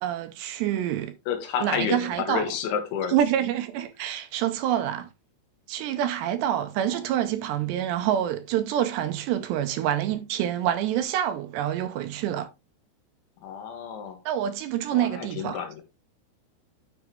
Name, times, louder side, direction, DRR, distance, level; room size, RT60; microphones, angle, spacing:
voice 1, 0.0-1.1 1.6-2.4 3.1-5.1 5.7-12.5 14.3-15.6, right 11 dB, 80° right, 2.6 m, -27 dB
voice 2, 1.3-3.2 13.4-14.2 14.9-15.8, left 7 dB, 80° left, 4.2 m, -30 dB
10.5 x 6.1 x 3.3 m
omnidirectional pair, 5.4 m